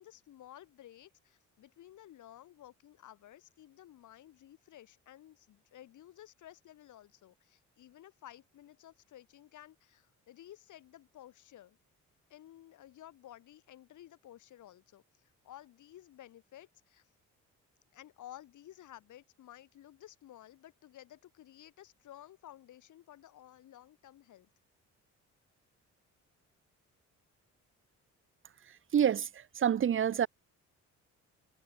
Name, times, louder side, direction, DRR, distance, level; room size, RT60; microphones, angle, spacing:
voice 1, 0.0-11.8 12.3-17.1 17.9-24.5, left 12 dB, 75° left, 7.5 m, -54 dB
voice 2, 28.9-30.3, right 9 dB, 45° right, 0.8 m, -28 dB
cardioid pair, 90°, 30 cm